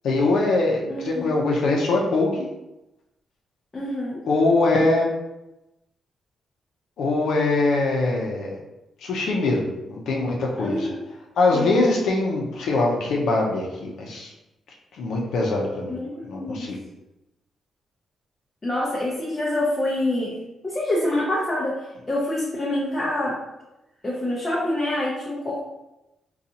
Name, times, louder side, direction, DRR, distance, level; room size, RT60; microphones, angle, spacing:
voice 1, 0.0-2.5 4.3-5.1 7.0-8.6 9.0-10.9 11.4-14.3 14.9-15.9 16.3-16.8, left 2 dB, 80° left, -2 dB, 0.6 m, -22 dB
voice 2, 0.9-1.3 3.7-4.2 10.6-11.0 11.5-11.8 15.9-16.7 18.6-20.3 20.6-21.7 22.1-23.4 24.0-25.6, left 1 dB, 20° left, -6 dB, 0.6 m, -26 dB
3.9 x 2.3 x 2.7 m, 0.95 s
wide cardioid pair, 170°, 0 cm